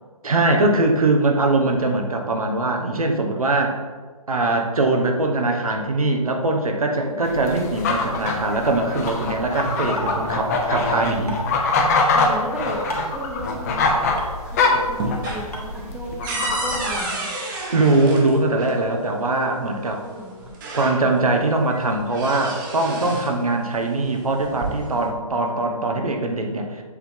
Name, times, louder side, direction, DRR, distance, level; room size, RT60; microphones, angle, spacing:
voice 1, 0.2-3.8 4.3-11.3 17.7-20.0 20.7-26.8, right 2 dB, 70° right, 3 dB, 1.1 m, -21 dB
voice 2, 7.0-7.3 12.1-12.8 13.1-13.9 14.4-17.3 20.0-20.5, right 1 dB, 5° right, -3 dB, 0.8 m, -34 dB
sound 1, 7.3-17.0, left 3 dB, 25° left, 0.6 m, -23 dB
sound 2, 9.1-9.2 10.0-10.1 11.3-11.4 12.9-13.2 14.2-14.3 15.5-15.6, equal, 85° left, 1.5 m, -30 dB
sound 3, 13.8-14.5 14.8-18.8 19.9-20.0 20.4-21.3 21.7-23.4 24.3-25.1, right 2 dB, 35° right, 1.3 m, -31 dB
7.8 x 3.8 x 3.7 m, 1.4 s
figure-of-eight pair, 135°, 19 cm